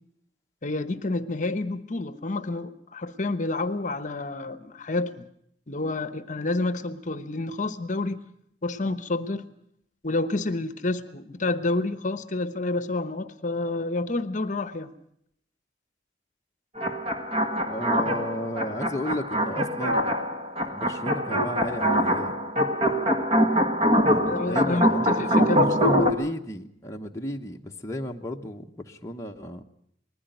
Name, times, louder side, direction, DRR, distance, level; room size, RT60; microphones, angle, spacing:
voice 1, 0.6-5.3 5.7-8.2 8.6-9.4 10.0-14.9 24.3-26.0, left 2 dB, 45° left, 12 dB, 1.0 m, -29 dB
sound 1, 16.8-26.1, equal, 35° right, 1.6 m, -24 dB
voice 2, 17.5-20.1 20.6-22.4 24.0-29.6, equal, 15° left, 1 dB, 1.0 m, -34 dB
20.5 x 15.0 x 9.1 m, 0.72 s
head